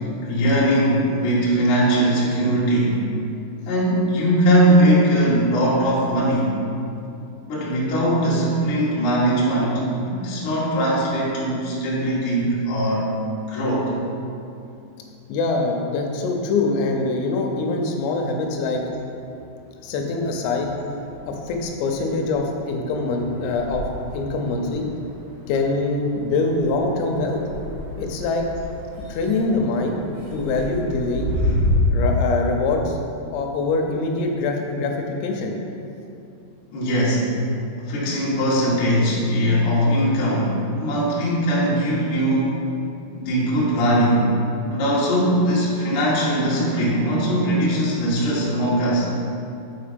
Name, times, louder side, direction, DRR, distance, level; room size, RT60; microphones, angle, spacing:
voice 1, 0.2-3.0 3.7-6.5 7.5-13.1 13.5-13.9 36.7-37.3 37.8-42.6 43.1-44.3 44.7-49.1, equal, 60° left, -7 dB, 2.2 m, -20 dB
voice 2, 15.3-18.8 19.8-20.7 21.3-23.9 24.1-24.9 25.5-27.4 28.0-28.5 29.1-30.0 30.3-31.3 31.9-35.6, left 3 dB, 85° left, 2 dB, 3.4 m, -24 dB
sound 1, 18.6-19.7 20.1-31.8, equal, 50° right, 2.3 m, -32 dB
7.1 x 5.5 x 5.1 m, 2.7 s
omnidirectional pair, 5.9 m